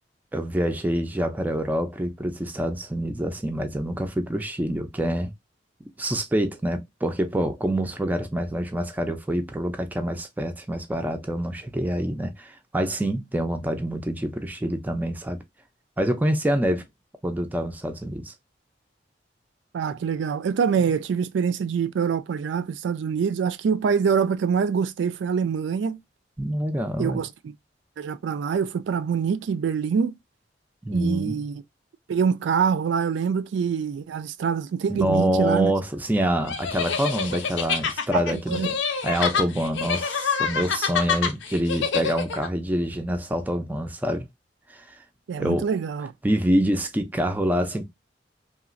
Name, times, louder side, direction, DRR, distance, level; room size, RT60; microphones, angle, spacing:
voice 1, 0.3-5.3 6.0-15.4 16.0-16.8 17.2-18.3 26.4-27.2 30.8-31.4 34.9-38.6 39.0-44.3 44.7-45.0 45.4-45.7 46.2-47.9, right 1 dB, 10° right, 0.4 m, -26 dB
voice 2, 19.7-26.0 27.0-27.5 28.0-30.1 30.9-31.6 32.1-35.7 38.1-38.7 45.3-46.1, right 6 dB, 80° right, 0.3 m, -25 dB
sound 1, 36.5-42.5, left 6 dB, 80° left, 0.5 m, -27 dB
2.9 x 2.4 x 2.4 m
head